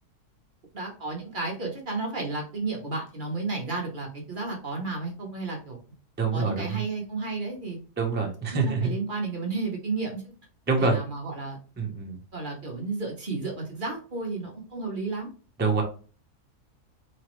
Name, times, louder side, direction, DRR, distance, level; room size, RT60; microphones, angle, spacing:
voice 1, 0.7-5.8 6.3-7.8 8.5-10.3 10.8-11.6 12.3-15.3, right 3 dB, 40° right, 0 dB, 0.9 m, -32 dB
voice 2, 6.2-6.8 8.0-9.0 10.7-11.0 11.8-12.1 15.6-15.8, right 4 dB, 15° right, 1 dB, 0.3 m, -25 dB
3.5 x 3.1 x 3.0 m, 0.37 s
omnidirectional pair, 1.7 m